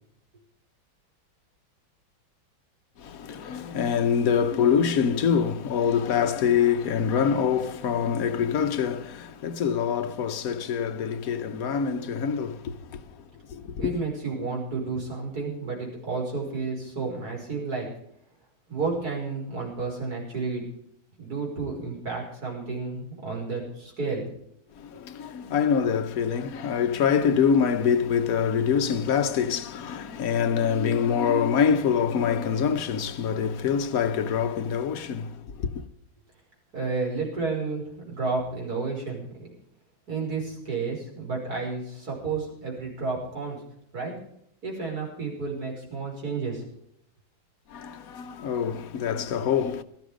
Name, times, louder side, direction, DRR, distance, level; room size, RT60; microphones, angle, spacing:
voice 1, 3.0-13.1 13.5-14.0 24.8-35.8 47.7-49.8, left 7 dB, 55° left, 1.2 m, -25 dB
voice 2, 13.8-17.9 18.7-20.6 21.2-24.3 36.7-39.5 40.1-43.6 43.9-44.1 44.6-46.6, right 4 dB, 50° right, 5.9 m, -31 dB
16.5 x 13.0 x 5.0 m
omnidirectional pair, 2.1 m